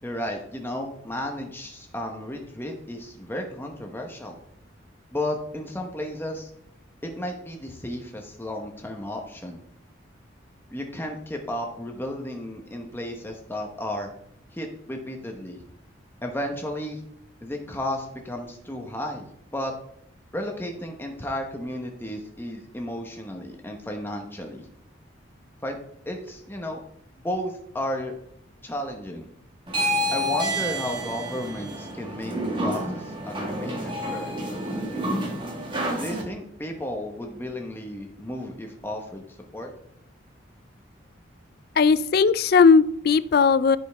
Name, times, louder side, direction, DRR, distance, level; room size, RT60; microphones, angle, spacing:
voice 1, 0.0-4.4 5.1-6.5 7.0-9.6 10.7-14.1 14.5-15.6 16.2-17.0 17.4-19.3 19.5-19.7 20.3-24.6 25.6-25.8 26.1-26.8 27.1-28.1 28.6-29.3 30.1-34.3 36.0-39.2 39.5-39.7, left 1 dB, 10° left, 2 dB, 1.0 m, -33 dB
sound 1, 29.7-36.2, equal, 25° right, 1.5 m, -29 dB
voice 2, 41.8-43.8, left 5 dB, 50° left, 16 dB, 0.3 m, -17 dB
15.0 x 5.4 x 3.5 m, 0.72 s
head